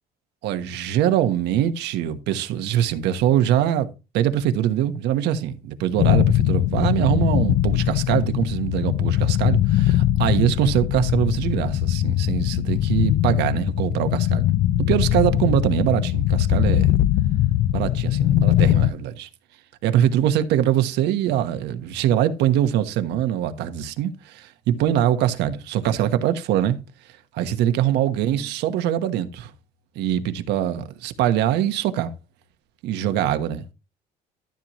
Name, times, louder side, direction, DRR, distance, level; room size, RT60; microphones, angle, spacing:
voice 1, 0.4-14.4 14.8-16.9 17.7-19.3 19.8-26.8 27.3-29.5 29.9-32.1 32.8-33.6, right 11 dB, 85° right, 1.2 m, -23 dB
sound 1, 6.0-18.9, left 13 dB, 75° left, 0.6 m, -21 dB
13.0 x 7.2 x 3.1 m
cardioid pair, 110°, 17 cm